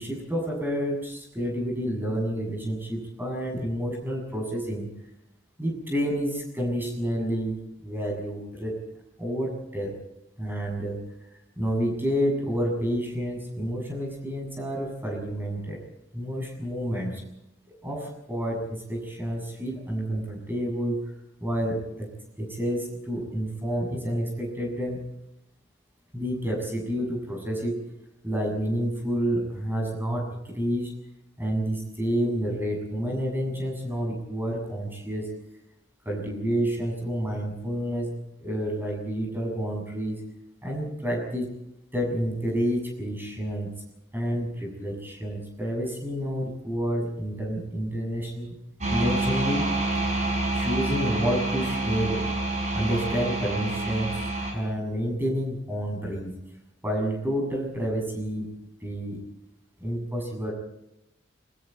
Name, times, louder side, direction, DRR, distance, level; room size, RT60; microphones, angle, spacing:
voice 1, 0.0-4.9 5.6-7.6 7.8-8.8 9.2-9.9 10.4-11.0 11.6-15.8 16.1-17.2 17.8-21.1 21.4-22.1 22.4-25.0 26.1-27.8 28.2-30.9 31.4-35.3 36.1-38.1 38.4-40.2 40.6-41.5 41.9-43.7 44.1-48.5 48.9-49.6 50.5-52.2 52.7-54.1 54.5-56.3 56.8-58.5 58.8-59.2 59.8-60.5, equal, 10° right, 0 dB, 7.2 m, -29 dB
sound 1, 48.8-54.5, right 2 dB, 40° right, 5.9 m, -27 dB
29.0 x 22.5 x 4.5 m, 0.87 s
head